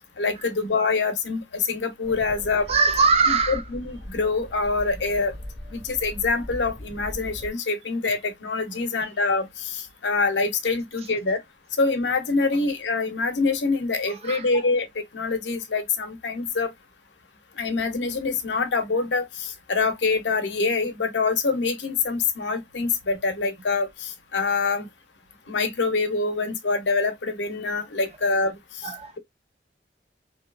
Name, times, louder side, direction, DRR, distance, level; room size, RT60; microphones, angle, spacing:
voice 1, 0.2-2.7 3.5-5.3 5.7-11.4 11.8-14.9 15.1-16.7 17.6-24.9 25.5-28.5, left 4 dB, 80° left, 0.7 m, -25 dB
sound 1, 2.0-7.5, left 1 dB, 70° right, 1.2 m, -39 dB
voice 2, 2.7-3.6 14.1-14.5 28.8-29.1, right 4 dB, 35° right, 0.5 m, -21 dB
2.8 x 2.3 x 2.3 m
head